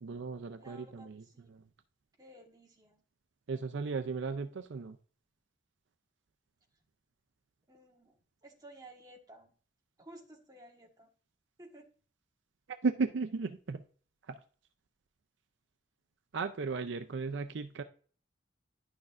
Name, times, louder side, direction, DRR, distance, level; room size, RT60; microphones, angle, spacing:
voice 1, 0.0-1.2 1.5-1.6 3.5-5.0 12.8-13.8 14.3-14.4 16.3-17.8, right 4 dB, 70° right, 9 dB, 0.5 m, -35 dB
voice 2, 0.6-1.6 2.2-3.0 7.7-9.5 10.0-11.1 11.6-11.9, right 1 dB, 20° right, 1 dB, 1.4 m, -55 dB
10.5 x 6.4 x 2.5 m, 0.43 s
head